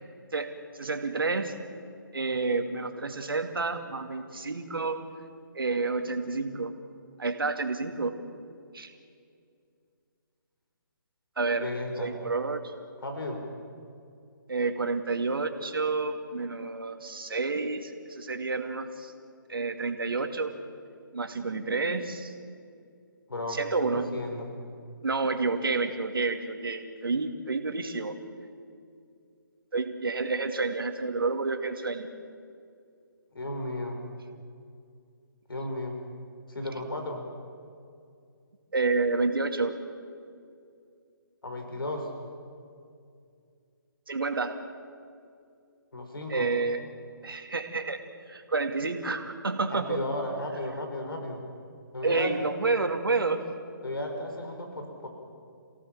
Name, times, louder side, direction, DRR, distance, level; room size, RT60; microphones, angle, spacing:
voice 1, 0.3-1.5 2.1-5.1 5.5-6.7 7.2-8.1 8.7-8.9 11.4-11.7 12.0-12.7 14.5-19.1 19.5-20.5 21.1-22.3 23.5-24.1 25.0-28.2 29.7-32.1 38.7-39.7 44.1-44.6 46.3-46.8 47.2-50.0 52.0-53.4, right 3 dB, 75° right, 6 dB, 2.5 m, -29 dB
voice 2, 11.6-12.1 13.0-13.4 23.3-24.5 33.3-34.0 35.5-36.0 36.5-37.2 41.4-42.1 45.9-46.5 49.7-51.4 51.9-52.3 53.8-55.1, left 1 dB, 80° left, 4 dB, 4.7 m, -34 dB
28.5 x 17.5 x 7.5 m, 2.4 s
figure-of-eight pair, 150°, 12 cm